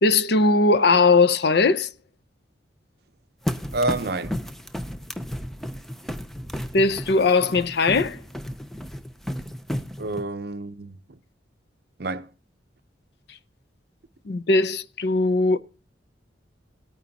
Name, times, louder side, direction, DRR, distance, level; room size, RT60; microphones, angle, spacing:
voice 1, 0.0-1.9 6.7-8.2 14.3-15.6, left 3 dB, 60° left, 0.6 m, -19 dB
sound 1, 3.5-10.2, equal, ahead, 0.5 m, -33 dB
voice 2, 3.7-4.4 10.0-11.2 12.0-12.3, right 2 dB, 55° right, 0.7 m, -28 dB
18.5 x 9.2 x 2.8 m
head